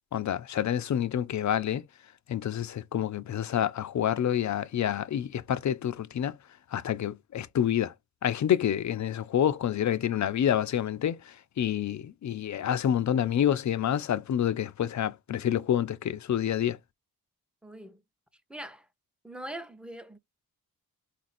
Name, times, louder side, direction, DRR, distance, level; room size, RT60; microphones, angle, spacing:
voice 1, 0.1-1.8 2.3-6.4 6.7-7.9 8.2-16.8, left 10 dB, 50° left, 0.5 m, -28 dB
voice 2, 17.6-18.0 18.5-18.9 19.2-20.2, right 1 dB, 5° right, 0.8 m, -42 dB
3.9 x 2.5 x 4.2 m
cardioid pair, 65°, 37 cm